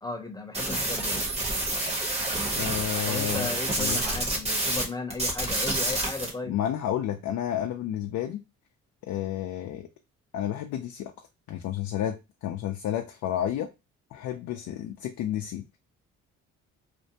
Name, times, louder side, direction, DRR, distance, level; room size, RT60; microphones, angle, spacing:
voice 1, 0.0-1.3 3.1-6.5, left 3 dB, 15° left, 0.6 m, -35 dB
sound 1, 0.5-4.9 5.1-6.3, right 2 dB, 20° right, 0.9 m, -28 dB
voice 2, 2.6-3.5 3.8-4.0 6.5-8.4 9.0-9.9 10.3-11.1 11.5-12.2 12.4-13.7 14.1-15.6, left 11 dB, 75° left, 0.5 m, -31 dB
2.5 x 2.1 x 2.7 m
cardioid pair, 90°, 30 cm